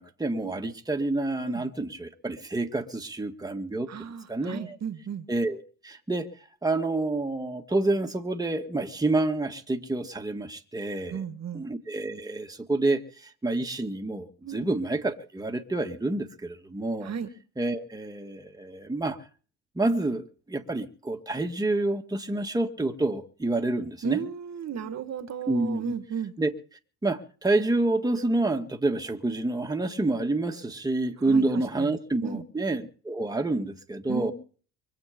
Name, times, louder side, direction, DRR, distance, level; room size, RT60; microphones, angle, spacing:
voice 1, 0.0-3.9 4.3-4.8 5.3-6.3 6.6-11.2 11.5-17.1 17.6-19.2 19.8-24.2 25.5-25.9 26.4-26.5 27.0-34.3, right 2 dB, 10° right, 4 dB, 2.0 m, -28 dB
voice 2, 3.9-5.3 11.1-11.7 14.4-14.7 17.0-17.3 24.0-26.3 31.3-32.4 34.1-34.3, right 7 dB, 45° right, 10 dB, 1.7 m, -34 dB
24.5 x 8.4 x 5.2 m, 0.40 s
cardioid pair, 100°, 36 cm